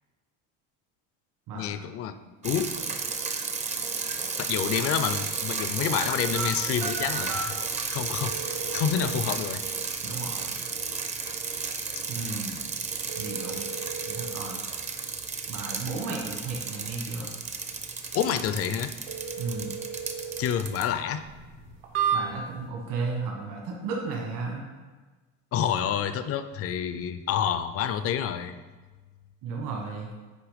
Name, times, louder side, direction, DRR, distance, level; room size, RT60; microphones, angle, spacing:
voice 1, 1.5-2.2 2.4-2.7 4.4-7.6 7.9-9.6 18.1-18.9 20.4-21.2 25.5-28.5, left 8 dB, 40° left, 11 dB, 0.5 m, -28 dB
sound 1, 2.4-20.9, right 5 dB, 20° right, 0.5 m, -33 dB
sound 2, 6.0-22.7, right 6 dB, 90° right, 1.5 m, -37 dB
voice 2, 10.0-10.7 12.1-12.8 13.2-13.7 14.0-14.6 15.5-17.3 19.4-19.8 22.1-24.7 29.4-30.1, right 4 dB, 65° right, -1 dB, 1.5 m, -34 dB
9.6 x 3.3 x 5.1 m, 1.3 s
cardioid pair, 140°, 35 cm